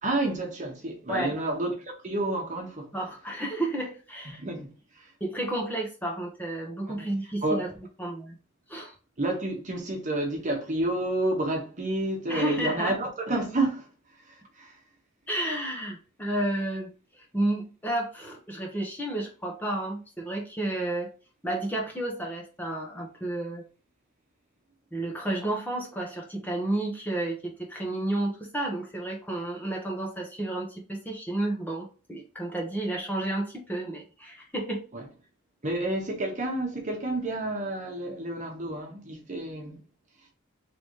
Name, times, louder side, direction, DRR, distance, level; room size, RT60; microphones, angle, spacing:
voice 1, 0.0-2.9 4.3-5.1 6.9-7.0 7.4-7.6 9.2-13.9 14.3-14.7 34.9-35.1 35.6-39.8, right 2 dB, 40° right, 1.1 m, -30 dB
voice 2, 1.1-1.4 2.9-4.4 5.2-7.7 8.0-8.4 8.7-8.9 12.3-13.0 15.3-16.9 17.2-21.1 21.4-23.6 24.9-34.8, right 1 dB, 10° left, 1.0 m, -31 dB
3.9 x 3.4 x 3.1 m
head